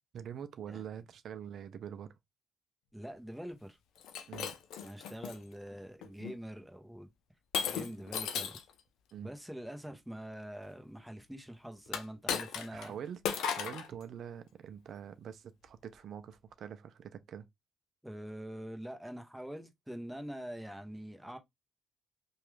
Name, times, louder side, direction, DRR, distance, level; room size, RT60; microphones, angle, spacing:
voice 1, 0.1-2.1 4.3-4.6 9.1-9.3 12.7-17.5, right 8 dB, 65° right, 0.4 m, -45 dB
voice 2, 2.9-3.8 4.8-7.1 7.6-8.6 9.2-13.0 18.0-21.4, equal, ahead, 0.8 m, -44 dB
Shatter, 4.0-5.4 6.0-6.4 7.5-8.7 11.9-12.9 13.2-13.9, left 7 dB, 85° left, 0.5 m, -36 dB
3.0 x 2.3 x 3.2 m
cardioid pair, 90°, 0 cm